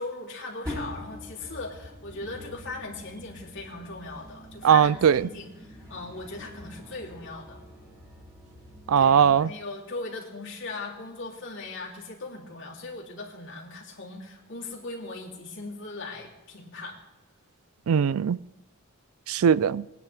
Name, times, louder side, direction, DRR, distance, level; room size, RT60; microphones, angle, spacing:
voice 1, 0.0-7.6 9.0-17.0, left 3 dB, 65° left, 3.0 m, -39 dB
sound 1, 0.6-9.4, left 1 dB, 15° right, 5.8 m, -44 dB
voice 2, 4.6-5.2 8.9-9.5 17.9-18.4 19.3-19.8, right 7 dB, 90° right, 0.4 m, -19 dB
22.5 x 9.9 x 3.4 m
head